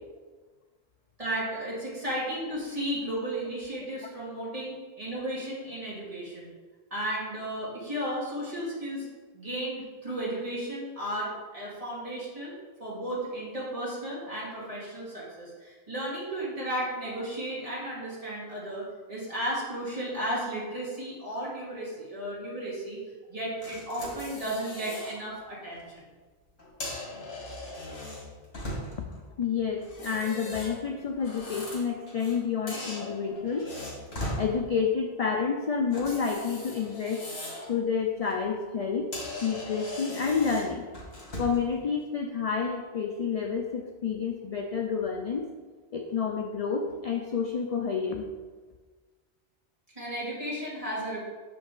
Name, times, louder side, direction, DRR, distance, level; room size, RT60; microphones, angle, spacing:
voice 1, 1.2-6.5 6.9-9.1 9.3-23.0 23.3-26.0 32.6-33.0 50.0-51.2, right 1 dB, 35° right, -7 dB, 2.2 m, -34 dB
sound 1, 23.6-25.2 25.6-25.8 26.6-29.1 29.8-32.4 32.7-34.4 35.9-37.7 38.1-38.3 38.8-38.9 39.1-41.7, left 1 dB, 80° left, 2.0 m, -39 dB
voice 2, 29.1-33.7 34.4-37.2 37.7-39.1 39.4-40.8 41.4-45.5 45.9-48.3, left 6 dB, 50° left, 3 dB, 0.5 m, -29 dB
6.3 x 5.2 x 3.8 m, 1.4 s
omnidirectional pair, 1.0 m